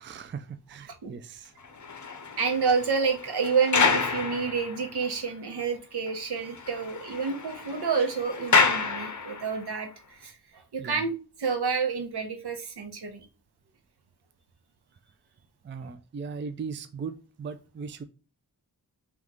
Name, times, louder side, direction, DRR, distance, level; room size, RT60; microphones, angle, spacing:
voice 1, 0.0-1.5 10.8-11.0 15.6-18.0, right 5 dB, 30° right, 0.4 m, -38 dB
sound 1, 1.6-5.1 5.6-5.7 6.1-6.2 6.4-9.7, left 5 dB, 50° left, 0.6 m, -28 dB
voice 2, 2.4-13.3, right 5 dB, 75° right, 0.9 m, -29 dB
3.5 x 3.0 x 3.6 m
wide cardioid pair, 110°, 39 cm